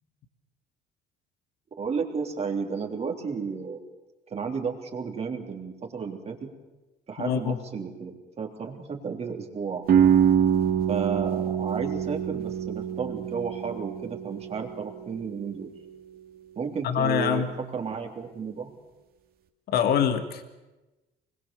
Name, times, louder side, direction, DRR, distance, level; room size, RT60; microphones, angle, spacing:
voice 1, 1.8-3.8 4.3-6.5 7.1-9.8 10.9-15.7 16.6-17.5 17.7-18.7, right 5 dB, 40° right, 2 dB, 3.5 m, -33 dB
voice 2, 7.2-7.6 16.8-17.5 19.7-20.4, left 8 dB, 65° left, 8 dB, 1.9 m, -24 dB
sound 1, 9.9-15.6, right 8 dB, 60° right, 2.3 m, -25 dB
24.5 x 21.5 x 7.2 m, 1.1 s
cardioid pair, 110°, 17 cm